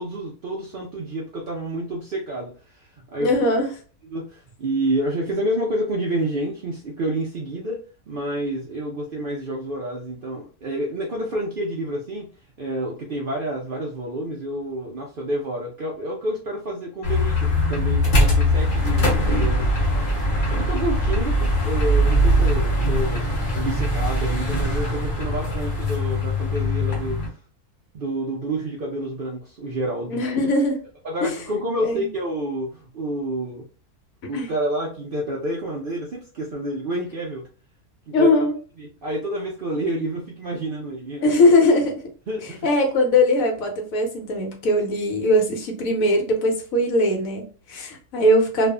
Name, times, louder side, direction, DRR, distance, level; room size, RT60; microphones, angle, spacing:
voice 1, 0.0-3.3 4.1-12.3 12.6-19.6 20.2-27.4 27.9-30.2 31.0-33.6 34.3-37.4 38.1-38.3 38.8-41.3 42.3-42.7, right 1 dB, 80° right, -2 dB, 0.4 m, -29 dB
voice 2, 3.2-3.7 30.1-30.8 31.2-31.3 31.8-32.1 34.3-34.5 38.1-38.5 41.2-42.0 42.6-48.7, left 1 dB, 65° left, 2 dB, 1.1 m, -20 dB
sound 1, 17.0-27.3, equal, 45° left, 0.7 m, -21 dB
2.6 x 2.3 x 2.2 m, 0.38 s
omnidirectional pair, 1.6 m